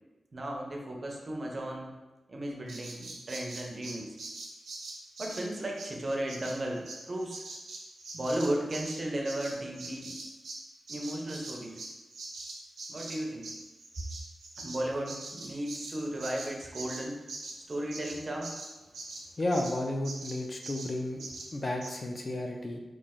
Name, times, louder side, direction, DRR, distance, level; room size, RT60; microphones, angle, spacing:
voice 1, 0.3-1.9 2.3-4.1 5.2-7.4 8.1-10.1 10.9-11.8 12.9-13.5 14.6-17.2 17.7-18.5, right 1 dB, 30° right, 0 dB, 0.5 m, -35 dB
Bird vocalization bird call bird song, 2.7-10.6 10.9-19.8 20.0-20.4 20.6-20.9 21.2-21.5 21.8-21.9, right 2 dB, 85° right, 0.7 m, -43 dB
voice 2, 19.4-22.8, left 1 dB, 30° left, 2 dB, 0.3 m, -33 dB
3.0 x 2.4 x 3.5 m, 1.2 s
wide cardioid pair, 165°, 0 cm